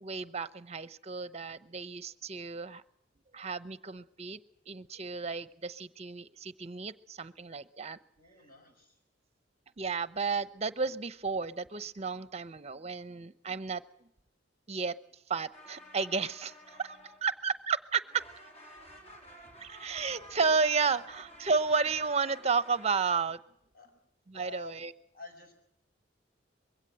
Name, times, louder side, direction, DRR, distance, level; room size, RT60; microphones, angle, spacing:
voice 1, 0.0-2.8 3.3-4.4 4.7-8.0 9.8-13.8 14.7-14.9 15.3-18.0 19.6-23.4 24.3-24.9, right 5 dB, 35° right, 15 dB, 0.8 m, -32 dB
voice 2, 8.2-9.0 23.7-23.9 24.3-24.8 25.1-25.5, left 2 dB, 50° left, 4 dB, 6.2 m, -48 dB
sound 1, 15.5-17.6 17.9-23.3, equal, 35° left, 3.7 m, -52 dB
22.5 x 16.5 x 7.8 m, 0.76 s
head